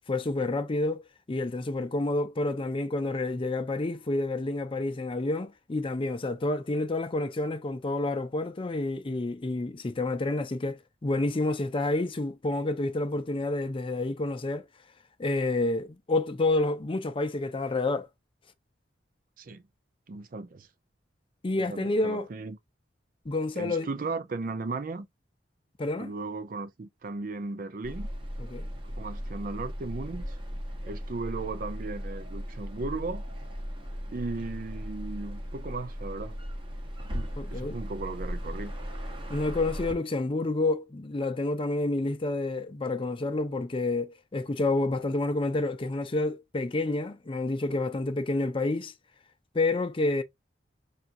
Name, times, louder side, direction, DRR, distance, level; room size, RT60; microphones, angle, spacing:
voice 1, 0.1-1.0 1.3-14.7 15.2-18.1 21.4-22.3 23.3-23.9 25.8-26.1 28.4-28.7 37.4-37.8 39.3-48.9 49.5-50.2, left 2 dB, 30° left, 0.5 m, -29 dB
voice 2, 20.1-20.7 21.5-22.6 23.5-25.1 26.0-28.1 28.8-30.4 30.9-33.2 34.1-36.4 37.1-38.7, right 3 dB, 50° right, 0.5 m, -36 dB
sound 1, 27.8-39.9, equal, 30° right, 0.9 m, -37 dB
5.7 x 2.4 x 2.5 m
head